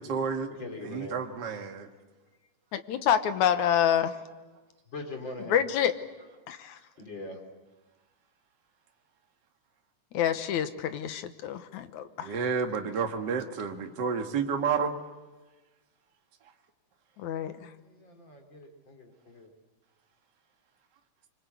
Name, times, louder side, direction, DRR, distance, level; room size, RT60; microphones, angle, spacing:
voice 1, 0.0-0.5 0.8-1.9 12.2-14.9, right 6 dB, 40° right, 4 dB, 2.0 m, -30 dB
voice 2, 0.6-1.2 4.9-5.6 7.0-7.4 17.8-19.5, left 2 dB, 40° left, 4 dB, 3.8 m, -41 dB
voice 3, 2.7-4.2 5.5-5.9 6.5-6.8 10.1-12.4 17.2-17.5, left 9 dB, 75° left, 10 dB, 2.4 m, -27 dB
25.5 x 24.5 x 8.1 m, 1.2 s
omnidirectional pair, 3.5 m